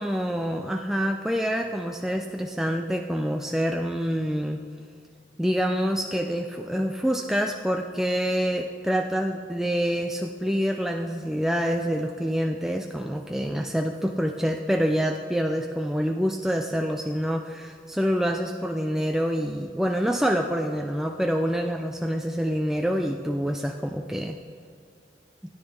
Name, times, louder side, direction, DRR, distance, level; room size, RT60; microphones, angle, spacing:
voice 1, 0.0-4.6 5.4-24.4, equal, ahead, 3 dB, 0.3 m, -26 dB
17.0 x 9.7 x 3.4 m, 2.2 s
head